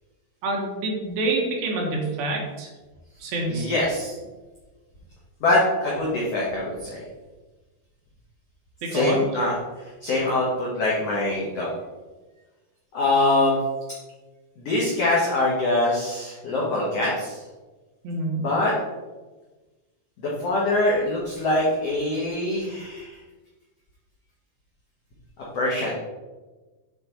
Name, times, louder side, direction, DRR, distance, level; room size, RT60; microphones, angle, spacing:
voice 1, 0.4-2.7 3.2-3.7 8.8-9.2 18.0-18.4, right 2 dB, 70° right, -1 dB, 3.3 m, -27 dB
voice 2, 3.5-4.1 5.4-7.0 8.9-9.6 10.0-11.7 12.9-13.6 14.6-17.4 18.4-18.7 20.2-23.2 25.5-25.9, left 2 dB, 60° left, -5 dB, 1.7 m, -23 dB
8.9 x 4.2 x 4.5 m, 1.2 s
omnidirectional pair, 4.5 m